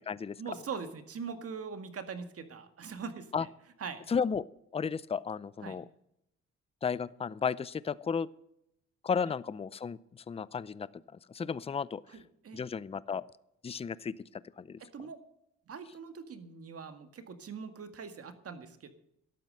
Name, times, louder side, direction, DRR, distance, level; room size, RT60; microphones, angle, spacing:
voice 1, 0.4-3.5 3.8-4.0 5.6-5.8 12.1-12.7 14.8-15.2 15.7-18.9, right 5 dB, 50° right, 9 dB, 1.9 m, -42 dB
voice 2, 4.1-4.5 4.7-5.9 6.8-8.3 9.0-10.9 11.3-12.0 12.5-13.2 13.6-14.8, left 6 dB, 20° left, 19 dB, 0.5 m, -33 dB
12.5 x 8.9 x 7.6 m, 0.78 s
cardioid pair, 90°, 30 cm